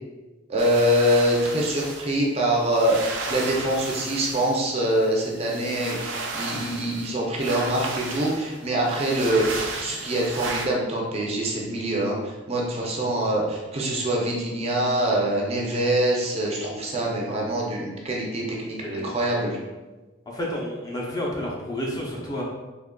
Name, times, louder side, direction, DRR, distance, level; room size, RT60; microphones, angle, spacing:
voice 1, 0.5-19.6, right 1 dB, 30° right, -2 dB, 0.5 m, -24 dB
sound 1, 0.6-2.1 2.7-4.6 5.0-7.1 7.4-10.7, right 3 dB, 80° right, 0.5 m, -34 dB
voice 2, 18.8-19.1 20.3-22.4, equal, 20° left, -4 dB, 0.5 m, -30 dB
3.6 x 2.9 x 2.2 m, 1.2 s
head